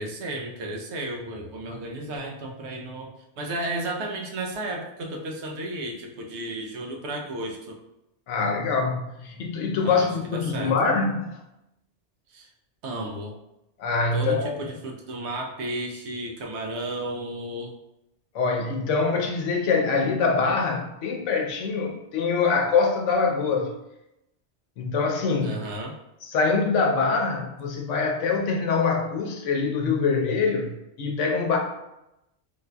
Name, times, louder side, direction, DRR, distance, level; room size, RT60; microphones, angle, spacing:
voice 1, 0.0-7.8 9.8-10.7 12.3-12.5 12.8-13.3 14.1-17.7 25.4-26.0, right 1 dB, 70° right, 1 dB, 0.9 m, -33 dB
voice 2, 8.3-11.4 13.8-14.6 18.3-23.7 24.8-25.6 26.2-31.6, left 4 dB, 90° left, 2 dB, 1.0 m, -24 dB
3.9 x 2.6 x 2.2 m, 0.87 s
omnidirectional pair, 1.2 m